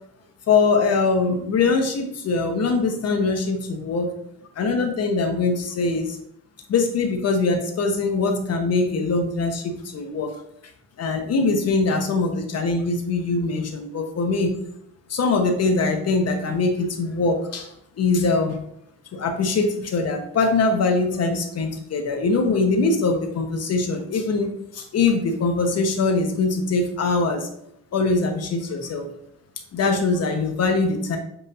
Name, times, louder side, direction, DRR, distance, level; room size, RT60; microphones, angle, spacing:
voice 1, 0.5-4.1 4.6-6.2 6.7-10.3 11.0-14.6 15.1-17.7 18.0-18.6 19.1-27.5 27.9-29.1 29.7-31.2, left 3 dB, 55° left, 4 dB, 1.0 m, -22 dB
7.4 x 2.7 x 2.7 m, 0.75 s
cardioid pair, 90°, 30 cm